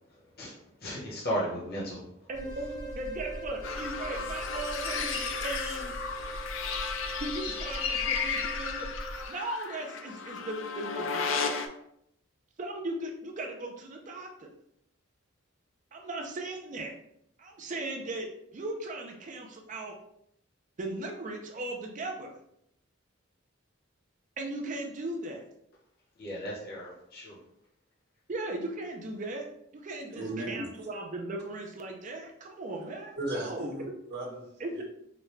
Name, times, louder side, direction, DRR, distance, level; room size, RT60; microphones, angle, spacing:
voice 1, 0.8-2.1 26.2-27.4, equal, 50° left, -5 dB, 1.0 m, -35 dB
sound 1, 2.3-9.3, right 1 dB, 20° left, 0.6 m, -40 dB
voice 2, 2.3-5.9 7.2-9.0 9.3-11.5 12.6-14.5 15.9-17.0 17.4-20.0 20.8-22.3 24.4-25.5 28.3-29.5 29.7-33.7 34.6-34.7, right 2 dB, 40° right, 2 dB, 0.4 m, -37 dB
sound 2, 3.6-11.7, left 5 dB, 70° left, 0.4 m, -34 dB
voice 3, 30.1-30.7 33.2-34.5 34.7-34.8, right 1 dB, 55° right, -2 dB, 1.1 m, -36 dB
5.0 x 2.2 x 3.1 m, 0.75 s
head